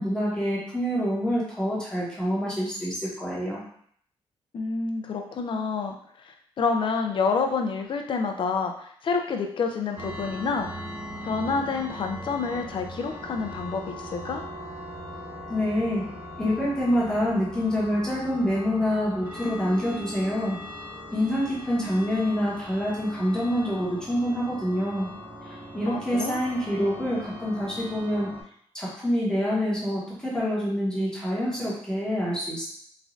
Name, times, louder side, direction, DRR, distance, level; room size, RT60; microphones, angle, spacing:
voice 1, 0.0-3.6 15.5-16.0 16.4-20.6 21.1-25.1 25.7-28.3 28.7-32.6, equal, 5° left, -7 dB, 1.0 m, -26 dB
voice 2, 4.5-5.9 6.2-10.7 11.2-14.4 25.9-26.4, left 5 dB, 50° left, 4 dB, 0.4 m, -28 dB
sound 1, 10.0-28.4, left 1 dB, 30° right, 1.1 m, -40 dB
3.1 x 2.5 x 2.5 m, 0.63 s
cardioid pair, 115°, 11 cm